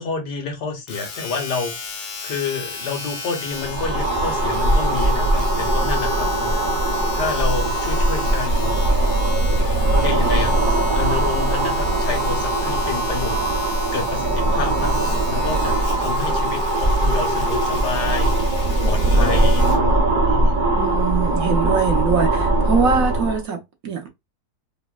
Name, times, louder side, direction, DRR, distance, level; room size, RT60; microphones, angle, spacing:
voice 1, 0.0-6.6 7.1-8.8 9.9-13.4 13.9-20.6, left 5 dB, 80° left, 1.7 m, -29 dB
Domestic sounds home sounds, 0.9-19.9 20.6-20.7, left 5 dB, 55° left, 0.7 m, -35 dB
sound 1, 3.5-23.4, right 1 dB, 40° right, 0.8 m, -20 dB
voice 2, 20.7-24.1, right 6 dB, 60° right, 1.2 m, -23 dB
5.1 x 2.2 x 2.4 m
omnidirectional pair, 1.8 m